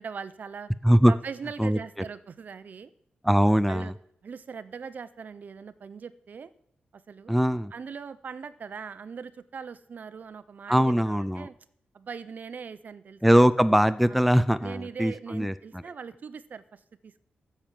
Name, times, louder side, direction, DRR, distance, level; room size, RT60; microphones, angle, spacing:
voice 1, 0.0-0.7 1.1-2.9 3.7-3.9 4.2-6.5 6.9-7.4 7.7-11.6 11.9-13.4 14.1-14.3 14.6-17.1, right 6 dB, 50° right, 14 dB, 0.7 m, -41 dB
voice 2, 3.2-3.9 7.3-7.7 10.7-11.5 13.2-15.8, equal, ahead, 13 dB, 0.4 m, -21 dB
13.5 x 7.1 x 7.6 m, 0.71 s
wide cardioid pair, 120°, 4 cm